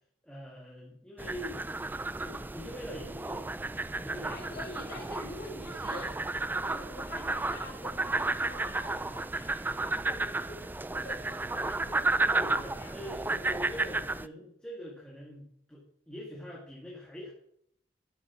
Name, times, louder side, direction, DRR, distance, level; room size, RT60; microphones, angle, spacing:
voice 1, 0.2-1.6 2.2-3.5 3.9-4.7 12.3-17.3, equal, 5° left, -4 dB, 2.0 m, -43 dB
frogs at night at a likeside close to a city, 1.2-14.3, right 2 dB, 10° right, 0.3 m, -33 dB
voice 2, 4.3-6.2 6.6-13.0, left 1 dB, 55° left, -1 dB, 3.7 m, -46 dB
11.5 x 7.2 x 6.1 m, 0.70 s
head